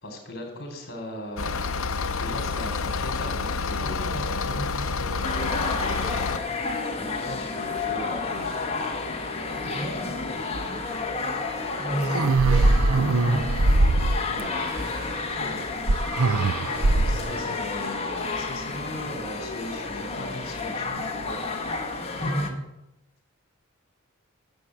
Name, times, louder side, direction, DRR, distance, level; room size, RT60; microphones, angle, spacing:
voice 1, 0.0-1.5 2.1-4.3 6.9-8.7 14.3-14.5 15.3-15.7 16.9-21.4, left 1 dB, 45° left, 3 dB, 3.7 m, -38 dB
sound 1, 1.4-6.4, left 4 dB, 70° left, 0.8 m, -28 dB
voice 2, 3.8-5.5 9.7-10.5 11.8-13.9 16.7-17.6 22.2-22.7, right 1 dB, 30° right, -4 dB, 5.3 m, -34 dB
sound 2, 5.2-22.5, left 3 dB, 30° left, 1.4 m, -31 dB
sound 3, 12.0-14.5 15.9-17.3, right 2 dB, 85° right, 0.8 m, -21 dB
10.5 x 7.5 x 8.0 m, 0.91 s
head